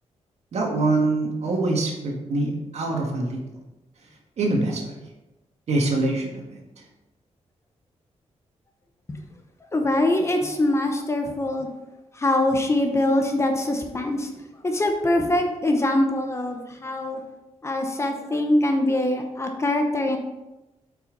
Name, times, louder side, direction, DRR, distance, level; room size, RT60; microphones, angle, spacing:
voice 1, 0.5-3.4 4.4-4.9 5.7-6.4, right 2 dB, 65° right, 0 dB, 1.7 m, -24 dB
voice 2, 9.7-11.7 12.2-14.3 14.6-17.2 17.6-20.2, left 1 dB, 25° left, 4 dB, 0.9 m, -23 dB
8.3 x 5.6 x 3.9 m, 1.0 s
wide cardioid pair, 155°, 12 cm